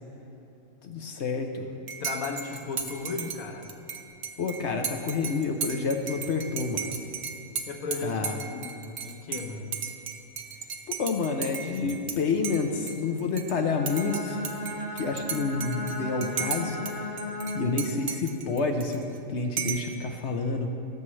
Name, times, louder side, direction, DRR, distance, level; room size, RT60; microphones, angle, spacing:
voice 1, 0.8-1.7 4.4-6.9 8.0-8.4 10.9-14.4 14.9-16.8 17.5-19.0 19.3-20.7, left 4 dB, 60° left, 4 dB, 0.9 m, -29 dB
Dishes pots and pans / Cutlery silverware / Chink clink, 1.9-12.2 12.4-13.5 13.9-16.9 17.2-19.2 19.6-19.9, right 6 dB, 55° right, 0.9 m, -35 dB
voice 2, 2.0-3.7 7.7-9.7, left 4 dB, 85° left, 3 dB, 1.4 m, -35 dB
Bowed string instrument, 13.5-18.0, left 1 dB, 45° left, 1.1 m, -35 dB
18.5 x 7.2 x 3.2 m, 2.9 s
omnidirectional pair, 1.4 m